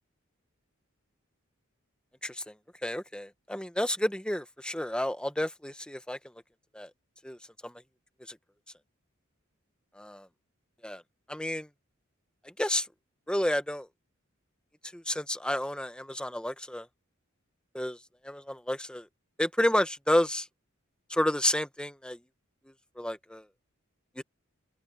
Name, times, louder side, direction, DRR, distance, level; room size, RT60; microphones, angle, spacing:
voice 1, 2.2-2.5 2.8-6.2 6.7-6.9 7.2-7.4 7.6-7.7 8.3-8.4 10.0-10.3 10.8-11.0 11.3-11.7 12.6-12.9 13.3-13.9 14.9-16.9 17.7-18.0 18.2-19.1 19.4-20.5 21.1-22.2 23.0-23.4 24.2-24.3, left 1 dB, 5° left, 1.2 m, -30 dB
head